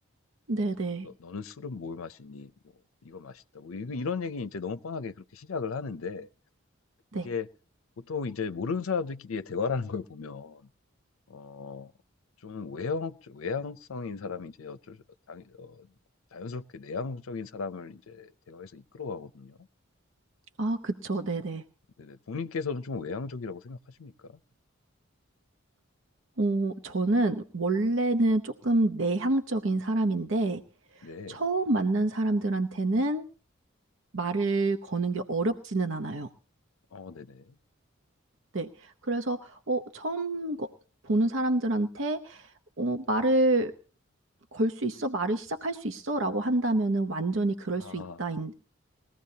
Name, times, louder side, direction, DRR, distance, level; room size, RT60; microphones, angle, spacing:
voice 1, 0.5-1.1 7.1-7.3 20.6-21.6 26.4-30.6 31.0-33.2 34.1-36.3 38.5-40.7 41.0-42.5 42.8-43.7 44.5-48.5, right 2 dB, 65° right, 0.8 m, -27 dB
voice 2, 1.0-2.5 3.0-6.3 7.2-7.5 8.0-10.6 11.3-11.9 12.4-15.0 15.3-15.9 16.3-19.6 22.0-24.4 31.0-31.4 36.9-37.6 47.8-48.3, left 5 dB, 85° left, 0.6 m, -36 dB
20.5 x 15.5 x 2.8 m
head